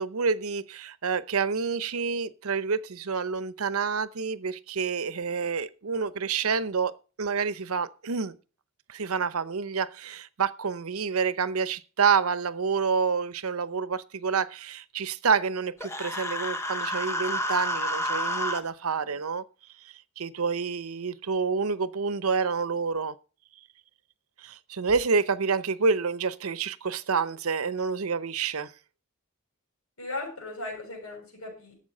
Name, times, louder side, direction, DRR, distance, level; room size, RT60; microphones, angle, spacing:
voice 1, 0.0-6.9 7.2-8.4 8.9-19.4 20.2-23.1 24.4-28.7, right 5 dB, 85° right, 0.8 m, -28 dB
Human voice, 15.8-18.6, equal, 10° left, 1.0 m, -30 dB
voice 2, 30.0-31.7, left 2 dB, 85° left, 6.9 m, -37 dB
12.5 x 8.0 x 5.4 m
head